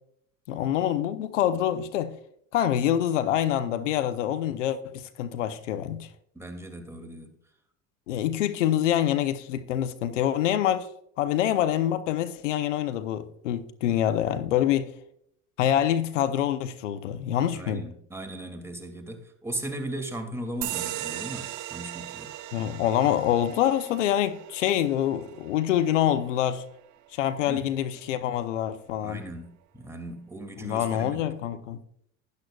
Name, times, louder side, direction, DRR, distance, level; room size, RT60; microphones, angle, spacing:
voice 1, 0.5-2.1 2.5-6.1 8.1-10.9 11.2-14.9 15.6-17.8 22.5-26.6 27.1-29.2 30.6-31.8, left 11 dB, 90° left, 0.8 m, -26 dB
voice 2, 6.3-7.3 17.5-22.3 27.5-27.7 29.0-31.2, right 1 dB, 5° right, 2.4 m, -37 dB
sound 1, 20.6-27.7, right 15 dB, 55° right, 0.9 m, -39 dB
12.0 x 10.5 x 2.3 m
hypercardioid pair, 75°, 36 cm